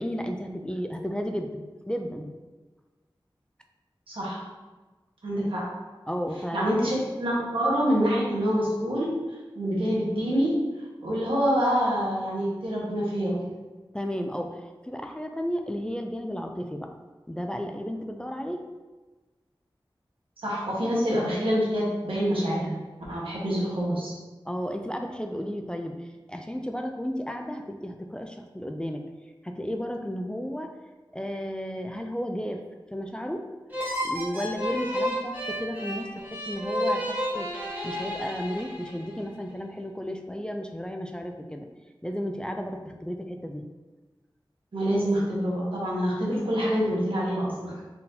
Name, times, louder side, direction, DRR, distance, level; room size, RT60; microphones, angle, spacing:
voice 1, 0.0-2.3 6.1-6.7 13.9-14.6 14.9-16.9 17.3-18.6 24.5-26.0 26.3-29.0 29.4-30.7 31.1-32.6 32.9-33.4 34.0-37.5 37.8-41.7 42.0-43.6, equal, 10° left, 4 dB, 0.3 m, -33 dB
voice 2, 4.1-4.4 5.2-5.6 6.5-9.1 9.5-10.5 11.0-13.3 20.4-22.7 23.1-24.1 44.7-47.7, equal, 85° right, -6 dB, 1.2 m, -26 dB
sound 1, 33.7-39.2, equal, 20° right, 1.1 m, -31 dB
4.2 x 3.8 x 2.7 m, 1.2 s
wide cardioid pair, 65°, 9 cm